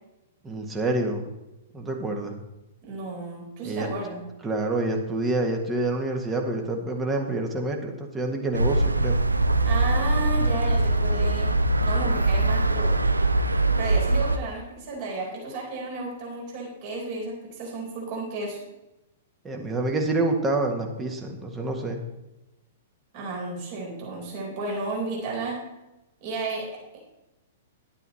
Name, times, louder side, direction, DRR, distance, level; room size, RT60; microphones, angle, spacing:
voice 1, 0.4-1.4 1.7-2.3 3.6-3.9 4.4-9.2 19.4-22.0, right 2 dB, 15° right, 2 dB, 1.7 m, -27 dB
voice 2, 2.8-4.2 9.6-11.5 11.8-13.0 13.8-18.6 23.1-25.6 26.2-27.0, right 2 dB, 45° right, -2 dB, 4.3 m, -33 dB
sound 1, 8.5-14.4, right 2 dB, 85° right, 0.6 m, -22 dB
11.0 x 9.1 x 4.2 m, 0.97 s
figure-of-eight pair, 110°, 0 cm